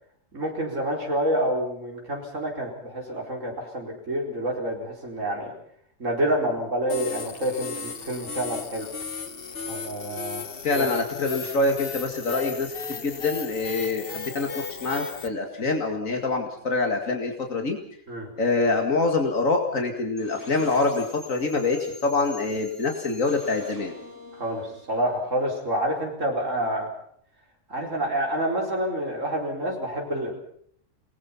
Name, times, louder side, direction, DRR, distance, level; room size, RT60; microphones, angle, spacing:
voice 1, 0.3-5.5 6.0-8.9 9.7-10.4 10.8-10.9 18.1-18.3 24.4-26.9 27.7-30.3, right 1 dB, 75° right, -1 dB, 4.9 m, -28 dB
sound 1, 6.9-15.3, left 5 dB, 50° left, 1.4 m, -35 dB
voice 2, 10.6-12.7 13.0-17.8 18.4-24.0, left 3 dB, 85° left, 3 dB, 2.6 m, -25 dB
sound 2, 20.2-26.0, left 1 dB, 15° right, 6.7 m, -46 dB
30.0 x 20.0 x 5.8 m, 0.65 s
omnidirectional pair, 1.3 m